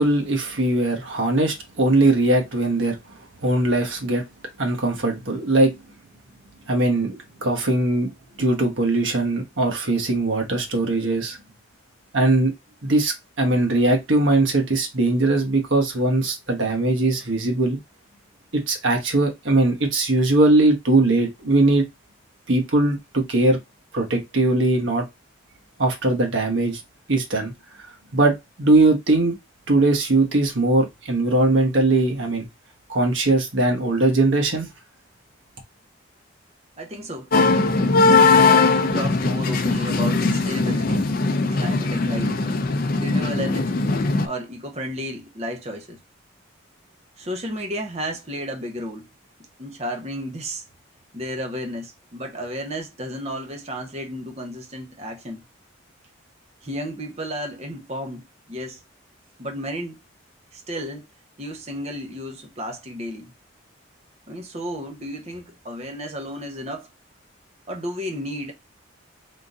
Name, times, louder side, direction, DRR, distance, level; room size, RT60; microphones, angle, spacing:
voice 1, 0.0-3.0 3.4-4.2 4.6-5.8 6.7-8.1 8.4-11.4 12.1-12.5 12.8-17.8 18.5-21.8 22.5-23.6 23.9-25.1 25.8-26.8 27.1-27.5 28.1-29.4 29.7-32.5 32.9-34.7, right 2 dB, 70° right, 1.3 m, -20 dB
voice 2, 36.8-37.3 37.8-38.3 38.7-41.1 41.5-42.4 43.0-43.8 44.2-46.0 47.2-49.1 49.6-50.6 51.1-55.4 56.6-58.8 59.4-60.0 60.5-61.1 61.4-63.3 64.3-66.9 67.7-68.5, equal, 30° right, 0.9 m, -32 dB
sound 1, 37.3-44.3, left 3 dB, 45° left, 0.4 m, -19 dB
3.7 x 2.8 x 3.7 m
head